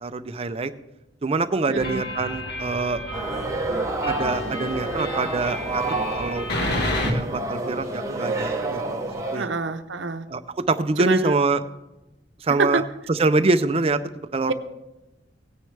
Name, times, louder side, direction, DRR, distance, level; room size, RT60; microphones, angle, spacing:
voice 1, 0.0-0.7 1.2-3.0 4.1-6.5 6.7-9.0 9.3-9.5 10.3-10.4 10.7-11.6 12.4-12.8 13.1-14.0 14.3-14.5, right 3 dB, 30° right, 11 dB, 0.5 m, -24 dB
voice 2, 1.7-2.1 9.3-10.3 11.0-11.3 12.6-12.8, right 4 dB, 75° right, 8 dB, 0.7 m, -26 dB
sound 1, 1.8-7.1, left 1 dB, 60° left, 1.5 m, -31 dB
sound 2, 3.1-9.4, right 2 dB, 15° right, 1.1 m, -28 dB
17.5 x 9.6 x 3.3 m, 1.0 s
head